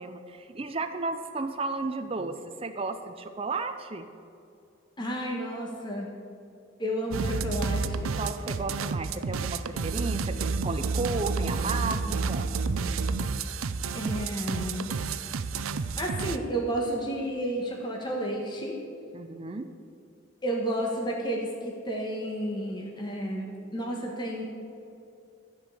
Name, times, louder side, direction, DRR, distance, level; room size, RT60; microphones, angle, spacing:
voice 1, 0.0-4.0 8.2-12.5 19.1-19.7, right 3 dB, 30° right, 7 dB, 0.5 m, -33 dB
voice 2, 5.0-6.1 6.8-8.2 13.9-15.2 16.0-18.8 20.4-24.5, right 1 dB, 20° left, -1 dB, 1.3 m, -32 dB
sound 1, 7.1-16.4, right 4 dB, 90° right, 0.5 m, -30 dB
13.0 x 5.3 x 8.3 m, 2.5 s
head